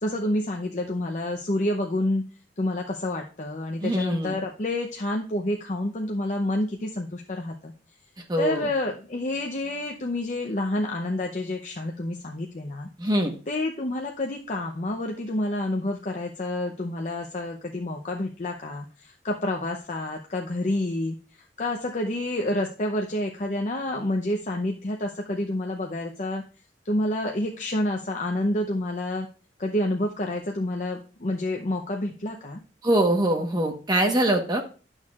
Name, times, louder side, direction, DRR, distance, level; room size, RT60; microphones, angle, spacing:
voice 1, 0.0-2.2 2.6-7.7 8.4-12.9 13.5-21.1 21.6-26.4 26.8-29.3 29.6-32.6, left 1 dB, 45° left, 1 dB, 0.7 m, -28 dB
voice 2, 3.8-4.4 8.3-8.7 13.0-13.3 32.8-34.6, right 1 dB, 25° right, 3 dB, 1.2 m, -23 dB
11.5 x 6.4 x 2.4 m, 0.38 s
head